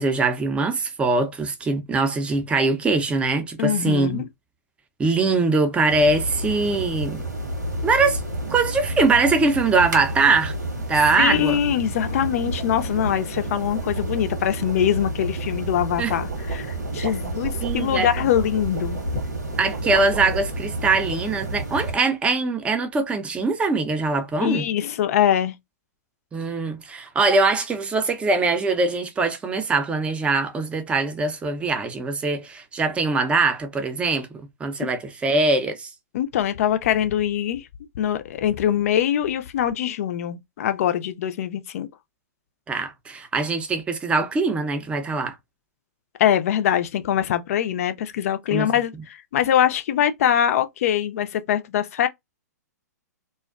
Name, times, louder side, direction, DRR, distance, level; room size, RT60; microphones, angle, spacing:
voice 1, 0.0-4.2 5.0-7.2 7.8-8.2 8.5-10.5 10.9-11.6 16.0-16.2 16.9-17.1 17.6-18.1 19.6-24.6 26.3-35.9 42.7-45.4 48.5-48.7, right 3 dB, 10° right, 0.5 m, -22 dB
voice 2, 3.6-4.3 11.2-16.7 16.9-19.0 24.4-25.6 36.1-37.7 38.0-41.9 46.2-52.1, left 10 dB, 55° left, 0.4 m, -23 dB
sound 1, 5.9-22.0, right 1 dB, 90° right, 1.1 m, -30 dB
sound 2, 12.2-20.9, right 5 dB, 60° right, 0.6 m, -37 dB
2.4 x 2.1 x 2.3 m
hypercardioid pair, 120°, 9 cm